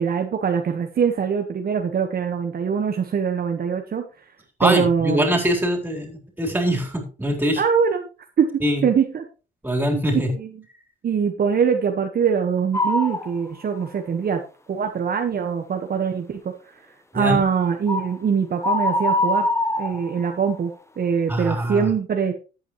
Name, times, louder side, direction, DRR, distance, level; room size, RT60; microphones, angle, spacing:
voice 1, 0.0-4.1 4.6-5.3 7.6-8.1 8.4-8.5 8.8-9.2 9.9-10.0 10.3-10.5 11.0-14.4 14.7-16.5 17.1-19.5 19.8-22.3, right 6 dB, 50° right, 4 dB, 1.4 m, -23 dB
voice 2, 4.6-7.6 8.6-8.8 9.6-10.3 17.1-17.4 21.3-21.9, equal, 10° right, 1 dB, 4.0 m, -23 dB
sound 1, 12.7-13.3 13.8-13.9 17.9-18.2 18.6-20.5, left 1 dB, 15° left, 1.2 m, -23 dB
13.5 x 8.6 x 3.1 m, 0.33 s
cardioid pair, 90°, 20 cm